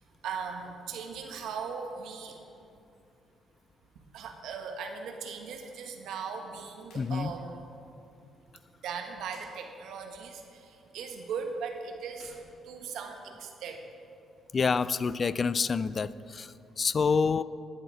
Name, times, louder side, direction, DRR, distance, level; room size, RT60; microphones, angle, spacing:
voice 1, 0.2-2.4 4.1-7.6 8.8-10.4 10.9-12.3 12.6-13.8, right 6 dB, 80° right, 4 dB, 1.4 m, -38 dB
sound 1, 6.8-7.1 7.4-7.5 9.2-9.5 12.1-13.4, left 2 dB, 80° left, 3.0 m, -58 dB
voice 2, 7.0-7.3 14.5-17.4, left 5 dB, 40° left, 16 dB, 0.3 m, -27 dB
11.0 x 11.0 x 5.0 m, 2.5 s
cardioid pair, 90°, 0 cm